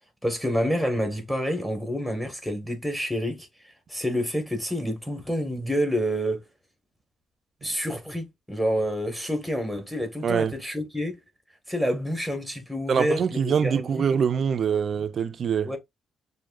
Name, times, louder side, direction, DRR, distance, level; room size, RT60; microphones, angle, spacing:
voice 1, 0.2-3.5 3.9-6.4 7.6-11.2 11.7-14.0 15.6-15.8, equal, ahead, 1.7 m, -28 dB
voice 2, 12.9-15.7, right 7 dB, 55° right, 0.5 m, -24 dB
6.2 x 2.7 x 2.5 m
cardioid pair, 90°, 0 cm